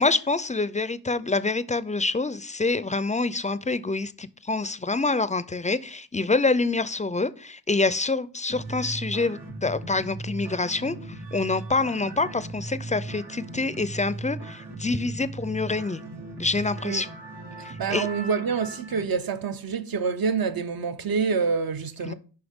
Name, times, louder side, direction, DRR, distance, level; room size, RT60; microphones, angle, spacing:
voice 1, 0.0-16.0 16.4-17.1 17.6-18.1 22.0-22.1, left 3 dB, 20° left, 0.4 m, -26 dB
sound 1, 8.5-19.0, right 2 dB, 90° right, 1.7 m, -38 dB
voice 2, 17.8-22.1, right 5 dB, 65° right, 0.7 m, -27 dB
7.8 x 5.4 x 3.6 m
wide cardioid pair, 85°, 39 cm